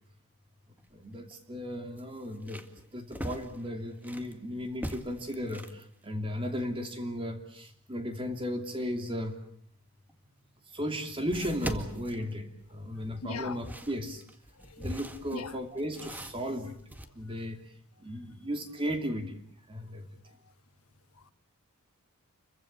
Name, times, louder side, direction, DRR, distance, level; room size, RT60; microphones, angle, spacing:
sound 1, 0.8-0.9 1.3-1.4 2.0-4.3 4.7-5.8 10.1-10.2 11.3-12.9 13.4-17.1, equal, 10° right, 1.9 m, -41 dB
voice 1, 0.9-2.7 2.9-9.4 10.6-14.2 14.8-16.8 17.1-19.4 19.7-20.1, equal, 25° right, 2.8 m, -35 dB
voice 2, 13.2-13.6 14.5-14.9 15.3-15.5 20.3-20.5 21.1-21.3, left 3 dB, 80° left, 1.1 m, -41 dB
29.5 x 24.0 x 7.3 m
head